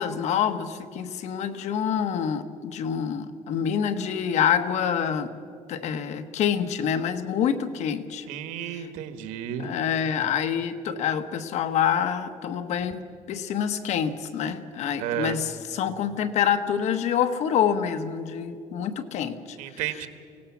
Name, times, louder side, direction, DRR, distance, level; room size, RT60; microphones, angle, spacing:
voice 1, 0.0-5.3 5.7-8.2 8.6-8.9 9.6-13.0 13.3-19.6, left 8 dB, 60° left, 9 dB, 1.2 m, -26 dB
voice 2, 8.3-9.7 15.0-15.4 19.6-20.1, right 10 dB, 85° right, 9 dB, 1.6 m, -32 dB
24.0 x 17.5 x 7.3 m, 2.3 s
cardioid pair, 140°, 13 cm